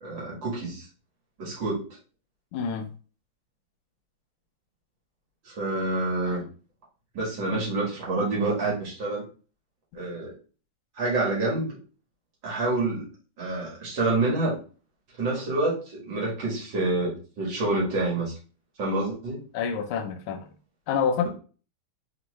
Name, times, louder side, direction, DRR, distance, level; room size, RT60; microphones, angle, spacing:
voice 1, 0.0-0.9 1.4-1.8 5.4-6.4 7.1-9.2 9.9-10.3 11.0-11.8 12.4-13.1 13.4-14.6 15.2-18.3 18.8-19.4, right 2 dB, 60° right, 2.2 m, -27 dB
voice 2, 2.5-2.9 19.5-20.5 20.9-21.3, left 6 dB, 85° left, 1.5 m, -27 dB
4.3 x 3.0 x 3.1 m
omnidirectional pair, 2.3 m